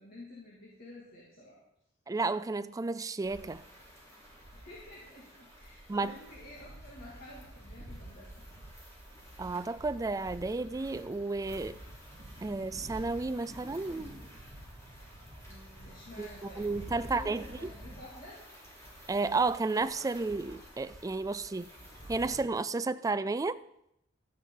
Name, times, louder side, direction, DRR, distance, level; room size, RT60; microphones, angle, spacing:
voice 1, 0.0-1.6 4.5-8.4 15.5-18.4, left 1 dB, 50° left, 2.5 m, -50 dB
voice 2, 2.1-3.6 5.9-6.2 9.4-11.8 12.4-14.2 16.2-17.7 19.1-21.7 22.1-23.6, right 3 dB, 15° right, 0.3 m, -32 dB
sound 1, 3.2-22.4, equal, 15° left, 3.7 m, -49 dB
12.5 x 9.4 x 3.9 m
head